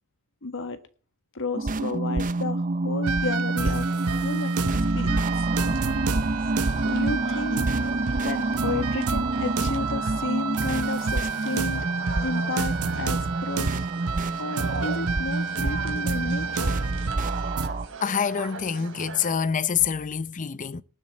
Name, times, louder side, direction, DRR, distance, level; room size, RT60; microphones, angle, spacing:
voice 1, 0.4-0.8 1.3-3.8 4.2-5.5 6.8-7.7 8.2-11.9 12.2-13.9 14.4-16.8, left 3 dB, 60° left, 1.6 m, -32 dB
sound 1, 1.5-17.9, right 2 dB, 35° right, 0.6 m, -28 dB
sound 2, 3.0-17.7, right 4 dB, 80° right, 0.9 m, -30 dB
sound 3, 3.6-19.3, right 4 dB, 60° right, 3.5 m, -41 dB
voice 2, 18.0-20.8, left 7 dB, 35° left, 0.6 m, -26 dB
19.0 x 7.3 x 4.3 m
head